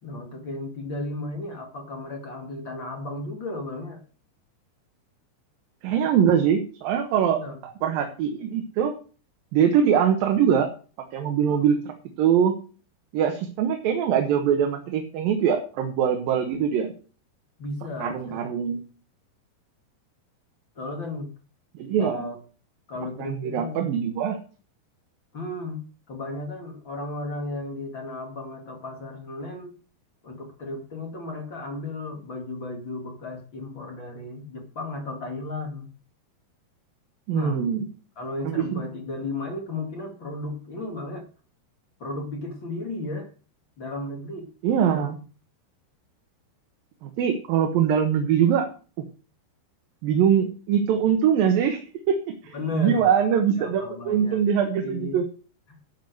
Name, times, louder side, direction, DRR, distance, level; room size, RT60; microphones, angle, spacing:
voice 1, 0.0-4.0 7.3-7.6 11.4-11.7 17.6-18.8 20.8-21.3 22.0-22.4 22.9-23.9 25.3-29.7 30.2-35.9 37.3-37.6 38.2-41.3 42.0-43.3 43.8-44.5 52.5-53.0 53.6-54.4 54.8-55.2 55.7-55.8, left 2 dB, 35° left, 3 dB, 2.3 m, -34 dB
voice 2, 5.8-8.9 9.5-10.7 11.1-12.5 13.1-16.9 18.0-18.8 21.7-22.3 23.2-24.4 37.3-37.8 38.4-38.8 44.6-45.2 47.0-48.7 50.0-55.3, right 8 dB, 65° right, 5 dB, 2.8 m, -23 dB
11.5 x 8.3 x 6.4 m, 0.38 s
omnidirectional pair, 4.7 m